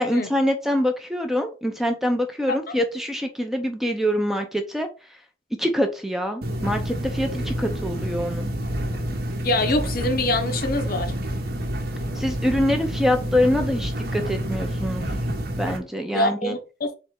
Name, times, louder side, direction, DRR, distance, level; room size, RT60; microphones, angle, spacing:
voice 1, 0.0-4.9 5.6-8.5 12.1-15.1 15.6-16.6, left 1 dB, ahead, 0.5 m, -25 dB
sound 1, 6.4-15.8, equal, 50° right, 0.9 m, -28 dB
voice 2, 9.4-11.1 16.1-16.9, left 2 dB, 50° left, 0.7 m, -24 dB
4.1 x 3.2 x 3.6 m
head